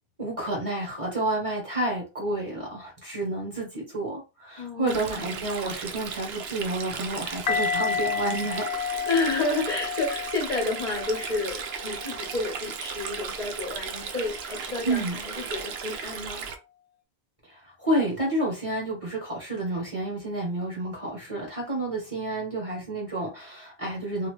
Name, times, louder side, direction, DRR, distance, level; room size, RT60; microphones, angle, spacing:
voice 1, 0.2-8.8 14.8-15.2 17.4-24.3, right 1 dB, 35° right, -3 dB, 1.2 m, -30 dB
voice 2, 4.6-5.5 9.1-16.5, left 3 dB, 45° left, -3 dB, 1.0 m, -30 dB
Stream, 4.9-16.5, right 6 dB, 80° right, 0.8 m, -36 dB
sound 1, 7.5-12.4 13.0-13.2, left 6 dB, 80° left, 0.8 m, -31 dB
2.8 x 2.5 x 3.0 m, 0.28 s
omnidirectional pair, 1.0 m